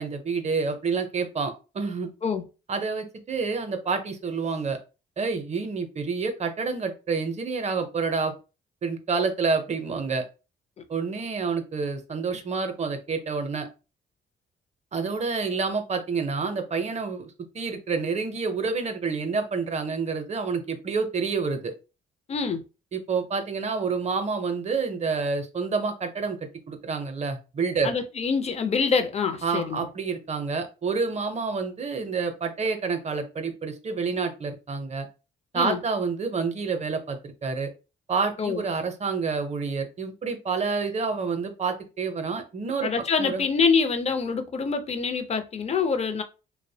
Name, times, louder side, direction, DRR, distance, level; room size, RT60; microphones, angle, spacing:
voice 1, 0.0-2.1 2.7-4.8 5.2-8.4 8.8-10.2 10.9-13.7 14.9-21.7 22.9-26.4 26.7-27.9 29.4-35.1 35.5-37.7 38.1-42.9 43.2-43.4, right 4 dB, 35° right, 0.5 m, -28 dB
voice 2, 22.3-22.6 27.8-29.9 35.5-35.8 38.4-38.6 42.8-46.2, left 5 dB, 35° left, 0.4 m, -25 dB
2.5 x 2.0 x 2.6 m
cardioid pair, 90°, 20 cm